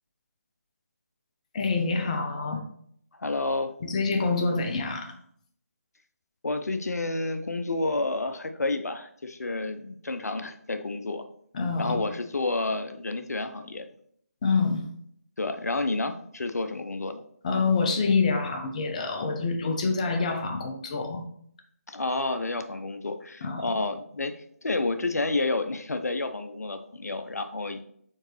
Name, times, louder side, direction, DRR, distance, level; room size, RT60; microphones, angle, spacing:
voice 1, 1.5-2.7 3.8-5.2 11.5-12.0 14.4-14.9 17.4-21.2 23.4-23.6, left 4 dB, 25° left, 6 dB, 0.5 m, -26 dB
voice 2, 3.2-3.7 6.4-11.2 11.8-13.9 15.4-17.2 21.9-24.3 24.6-27.8, left 2 dB, 75° left, 8 dB, 0.5 m, -30 dB
4.5 x 3.8 x 3.1 m, 0.65 s
figure-of-eight pair, 160°, 9 cm